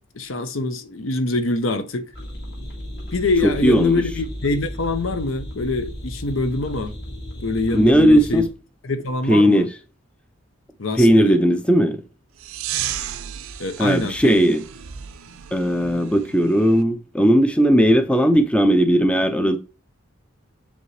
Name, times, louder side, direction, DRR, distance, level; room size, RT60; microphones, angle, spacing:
voice 1, 0.1-2.1 3.1-6.9 7.4-8.4 8.8-9.7 10.8-11.4 13.6-14.5, left 2 dB, 70° left, 0.8 m, -24 dB
sound 1, 2.1-8.5, equal, 55° left, 2.0 m, -34 dB
voice 2, 3.4-4.0 7.7-8.5 9.3-9.7 10.9-12.0 13.8-14.6 15.5-19.6, equal, 5° left, 0.4 m, -17 dB
sound 2, 12.4-16.8, right 10 dB, 90° right, 0.6 m, -33 dB
7.1 x 5.1 x 3.2 m
head